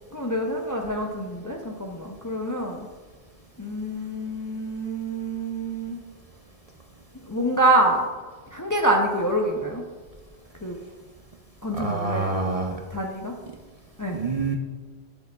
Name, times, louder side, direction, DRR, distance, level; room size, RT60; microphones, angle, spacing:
voice 1, 0.1-2.9 3.6-6.0 7.3-8.1 8.5-9.8 10.6-10.8 11.6-12.3 12.9-13.4 14.0-14.2, right 1 dB, 25° left, 1 dB, 0.4 m, -26 dB
voice 2, 11.7-12.8 14.1-14.6, right 3 dB, 45° right, 2 dB, 0.5 m, -26 dB
8.3 x 6.6 x 2.3 m, 1.5 s
omnidirectional pair, 1.1 m